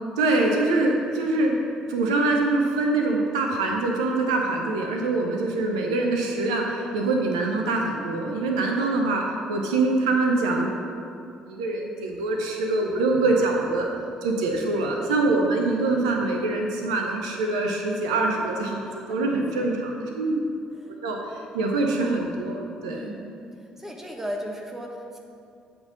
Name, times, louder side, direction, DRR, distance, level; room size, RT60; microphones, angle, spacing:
voice 1, 0.2-1.6 1.9-10.7 11.5-13.8 14.2-18.8 19.1-20.4 21.0-23.1, right 2 dB, 75° right, 1 dB, 0.6 m, -24 dB
voice 2, 18.8-19.7 22.9-23.3 23.6-25.2, equal, 10° right, 1 dB, 1.3 m, -36 dB
8.7 x 3.8 x 6.5 m, 2.5 s
figure-of-eight pair, 50°, 3 cm